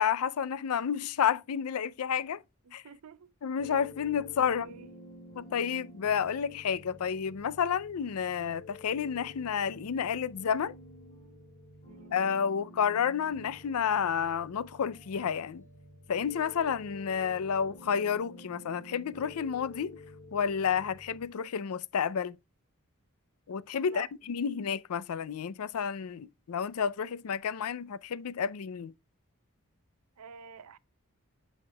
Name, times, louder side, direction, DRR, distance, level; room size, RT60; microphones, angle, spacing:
voice 1, 0.0-2.4 2.7-2.8 3.4-4.7 5.4-10.8 12.1-15.6 16.1-20.0 20.3-22.4 23.5-28.9, left 7 dB, 80° left, 0.4 m, -30 dB
voice 2, 2.6-3.3 4.3-4.9 11.9-12.2 23.8-24.4 30.2-30.8, right 6 dB, 90° right, 0.6 m, -49 dB
sound 1, 3.6-21.3, left 1 dB, 35° left, 4.8 m, -51 dB
8.6 x 6.5 x 2.2 m
head